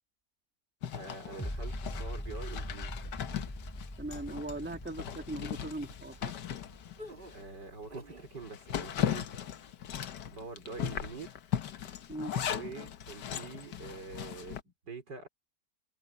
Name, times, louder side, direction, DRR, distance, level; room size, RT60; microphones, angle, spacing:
Zipper (clothing), 0.8-7.4 7.8-7.9 8.3-14.6, left 10 dB, 75° left, 1.7 m, -38 dB
voice 1, 0.9-2.9 7.3-9.4 10.3-11.4 12.5-15.3, right 4 dB, 80° right, 5.1 m, -45 dB
sound 1, 1.4-8.4 8.9-9.0, left 1 dB, 10° left, 3.4 m, -42 dB
voice 2, 4.0-6.3 12.1-12.4, right 2 dB, 5° right, 1.8 m, -39 dB
sound 2, 7.0-8.3 8.7-9.1, equal, 30° right, 2.6 m, -49 dB
omnidirectional pair, 1.8 m